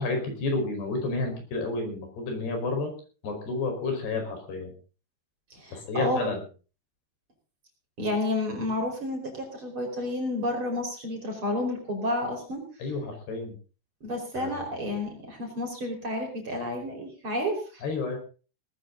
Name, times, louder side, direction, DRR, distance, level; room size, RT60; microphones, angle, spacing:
voice 1, 0.0-2.9 3.2-4.7 5.7-6.4 12.8-13.6 14.4-14.6 17.8-18.2, left 3 dB, 80° left, 4 dB, 7.2 m, -30 dB
voice 2, 5.5-6.3 8.0-12.7 14.0-17.8, left 1 dB, 30° right, 2 dB, 5.5 m, -30 dB
19.0 x 14.5 x 4.0 m, 0.37 s
omnidirectional pair, 4.7 m